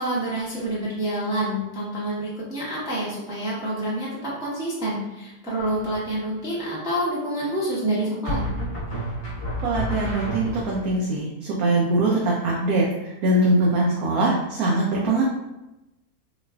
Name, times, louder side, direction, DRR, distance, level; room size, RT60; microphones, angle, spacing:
voice 1, 0.0-8.5, right 1 dB, 5° right, -8 dB, 0.7 m, -27 dB
sound 1, 5.6-6.1 8.2-10.9, equal, 35° left, 1.1 m, -30 dB
voice 2, 9.6-15.2, right 2 dB, 80° right, -4 dB, 1.1 m, -22 dB
3.9 x 2.5 x 2.3 m, 0.96 s
omnidirectional pair, 1.6 m